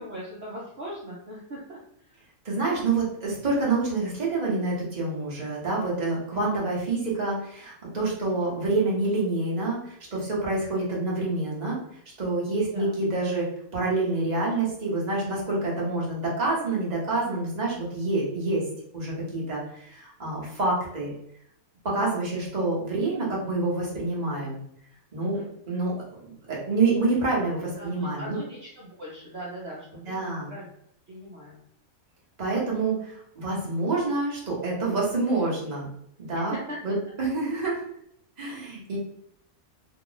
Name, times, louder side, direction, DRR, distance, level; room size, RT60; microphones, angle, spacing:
voice 1, 0.0-2.2 8.3-8.5 12.6-12.9 25.2-25.5 27.8-30.7 31.1-31.6 36.3-36.8, right 1 dB, 55° right, -6 dB, 0.9 m, -40 dB
voice 2, 2.4-11.8 12.2-18.6 18.9-21.1 21.8-24.6 25.1-25.4 25.7-25.9 26.2-28.4 30.1-30.5 32.4-35.9 36.2-36.5 36.8-37.8 38.4-39.0, right 3 dB, 30° right, -5 dB, 1.1 m, -27 dB
2.9 x 2.3 x 3.8 m, 0.72 s
omnidirectional pair, 1.5 m